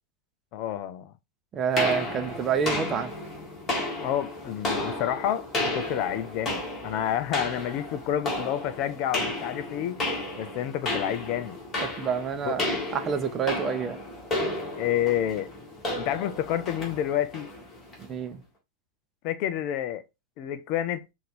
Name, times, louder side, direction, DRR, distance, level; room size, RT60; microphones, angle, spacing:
voice 1, 0.5-1.1 4.0-5.4 5.7-11.5 12.4-12.6 14.8-15.5 16.0-17.5 19.2-20.0 20.4-21.0, left 11 dB, 40° left, 0.5 m, -29 dB
voice 2, 1.5-3.1 12.0-14.0 18.0-18.4, right 7 dB, 25° right, 0.7 m, -28 dB
sound 1, 1.8-18.1, left 1 dB, 20° left, 2.1 m, -33 dB
5.7 x 2.6 x 3.4 m
figure-of-eight pair, 90°, 0 cm